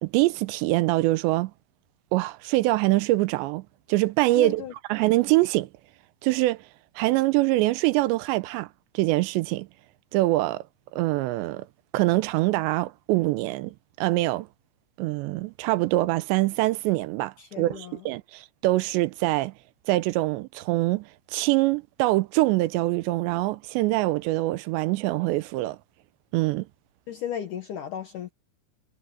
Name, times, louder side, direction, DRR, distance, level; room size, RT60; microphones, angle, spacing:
voice 1, 0.0-1.5 2.1-4.6 4.9-5.7 6.2-6.6 7.0-8.7 8.9-9.7 10.1-10.6 10.9-11.7 11.9-14.5 15.0-19.5 19.9-25.8 26.3-26.7, right 19 dB, 80° right, 2.8 m, -24 dB
voice 2, 4.4-4.7 17.4-18.0 27.1-28.3, left 9 dB, 70° left, 2.0 m, -35 dB
omnidirectional pair, 5.2 m